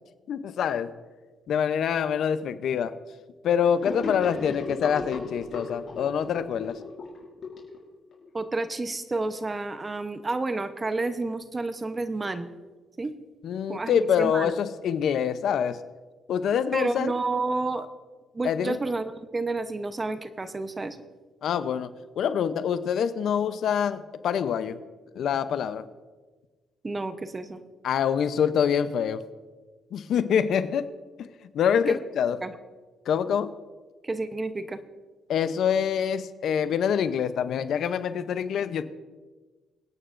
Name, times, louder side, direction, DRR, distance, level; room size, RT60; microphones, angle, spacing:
voice 1, 0.3-0.9 1.5-2.9 3.4-6.8 13.4-15.8 16.3-17.1 18.4-18.8 21.4-24.8 25.2-25.8 27.8-29.2 29.9-30.9 31.2-31.3 31.5-32.4 33.1-33.5 35.3-38.8, left 8 dB, 70° left, 12 dB, 0.6 m, -25 dB
Gurgling / Sink (filling or washing), 3.8-8.3, left 4 dB, 50° left, 4.1 m, -36 dB
voice 2, 8.3-12.5 13.0-13.1 13.7-14.5 16.7-17.9 18.3-21.0 26.8-27.6 31.9-32.0 32.4-32.5 34.0-34.8, right 3 dB, 25° right, 10 dB, 0.8 m, -30 dB
25.5 x 8.9 x 2.5 m, 1.3 s
cardioid pair, 90°, 0 cm